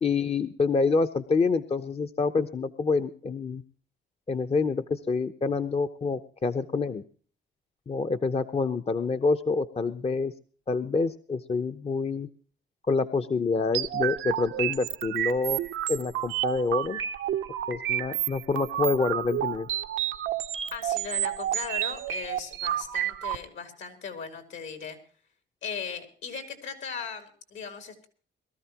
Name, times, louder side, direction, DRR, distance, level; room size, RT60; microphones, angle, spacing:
voice 1, 0.0-3.6 4.3-7.0 7.9-10.3 10.7-12.3 12.8-15.6 15.9-17.0 17.7-19.7, left 4 dB, 30° left, 8 dB, 0.8 m, -27 dB
sound 1, 13.7-23.4, right 12 dB, 80° right, 0.9 m, -30 dB
voice 2, 20.7-25.0 25.6-28.1, left 6 dB, 70° left, 7 dB, 3.6 m, -38 dB
22.0 x 13.5 x 2.9 m, 0.43 s
cardioid pair, 90°, 20 cm